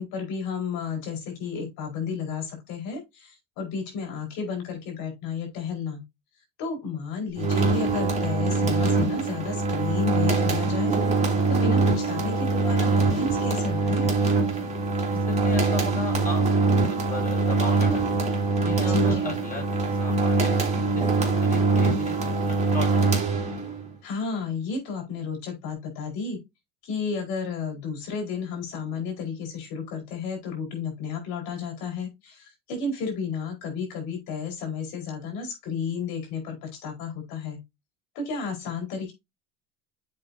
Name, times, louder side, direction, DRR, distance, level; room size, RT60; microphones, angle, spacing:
voice 1, 0.0-6.0 6.6-11.0 11.5-14.1 18.9-19.3 24.0-26.4 26.8-37.6 38.1-39.1, left 5 dB, 70° left, 2 dB, 4.5 m, -32 dB
sound 1, 7.4-23.8, right 3 dB, 20° right, 3.0 m, -23 dB
voice 2, 15.1-18.2 18.6-23.3, left 1 dB, 25° left, 1 dB, 5.3 m, -36 dB
7.8 x 5.6 x 2.7 m, 0.21 s
supercardioid pair, 110°, 37 cm